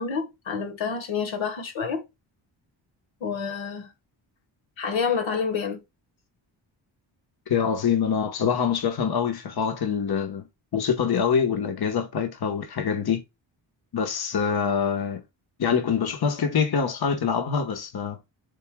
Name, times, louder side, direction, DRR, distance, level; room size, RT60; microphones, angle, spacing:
voice 1, 0.0-2.0 3.2-3.9 4.8-5.8, left 6 dB, 80° left, 1.4 m, -28 dB
voice 2, 7.5-10.4 10.7-13.2 13.9-15.2 15.6-18.2, left 7 dB, 55° left, 1.2 m, -25 dB
6.6 x 3.5 x 2.2 m
cardioid pair, 80°, 46 cm